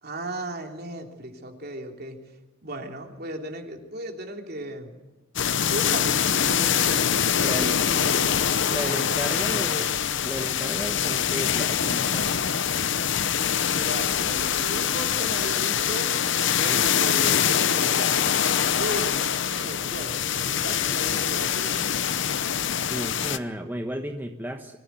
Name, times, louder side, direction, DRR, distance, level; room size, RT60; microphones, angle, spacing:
voice 1, 0.0-5.0 5.7-7.1 7.5-9.9 13.7-16.2 16.6-18.3 18.8-21.7, right 1 dB, 50° right, 3 dB, 3.1 m, -36 dB
sound 1, 5.4-23.4, left 8 dB, 60° left, 0.9 m, -24 dB
voice 2, 7.4-7.8 8.7-10.0 10.2-12.4 22.8-24.8, equal, 10° right, 4 dB, 1.3 m, -33 dB
24.5 x 15.5 x 9.4 m, 1.2 s
head